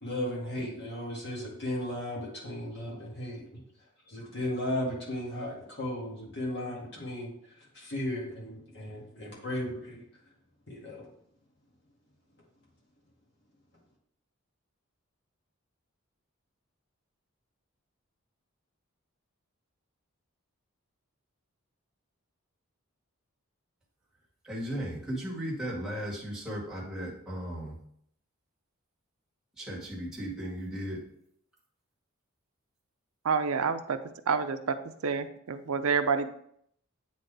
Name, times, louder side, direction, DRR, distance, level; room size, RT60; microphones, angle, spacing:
voice 1, 0.0-3.6 4.1-10.0 10.7-11.1, left 1 dB, 50° left, -4 dB, 2.0 m, -35 dB
voice 2, 24.4-27.8 29.6-31.0, equal, 5° right, -7 dB, 1.9 m, -36 dB
voice 3, 33.2-34.0 34.3-34.6 35.0-36.3, right 5 dB, 80° right, 9 dB, 0.5 m, -28 dB
8.4 x 4.1 x 3.4 m, 0.70 s
head